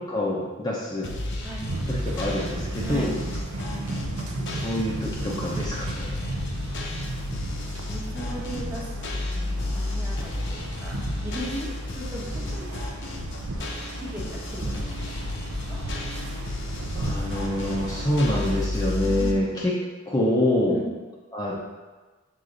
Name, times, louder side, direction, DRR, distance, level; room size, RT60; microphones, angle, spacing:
voice 1, 0.1-1.1 1.9-3.1 4.3-6.3 17.0-19.7 20.1-20.8 21.3-21.5, left 1 dB, 20° left, -5 dB, 0.7 m, -26 dB
sound 1, 1.0-19.3, left 2 dB, 55° left, 0.8 m, -32 dB
sound 2, 1.6-18.7, right 2 dB, 85° right, 0.7 m, -35 dB
voice 2, 2.8-3.2 6.6-7.0 7.6-12.8 14.0-15.8 19.0-19.4 20.7-20.9, right 1 dB, 10° right, -5 dB, 1.1 m, -38 dB
6.6 x 3.8 x 3.9 m, 1.3 s
head